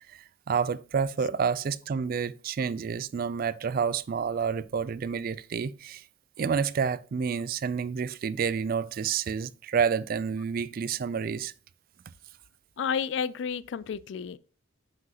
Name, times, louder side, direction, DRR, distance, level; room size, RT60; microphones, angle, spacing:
voice 1, 0.0-6.0 6.4-11.5, right 6 dB, 45° right, 0.3 m, -29 dB
voice 2, 12.8-14.4, left 6 dB, 60° left, 0.3 m, -31 dB
7.7 x 6.0 x 2.9 m
head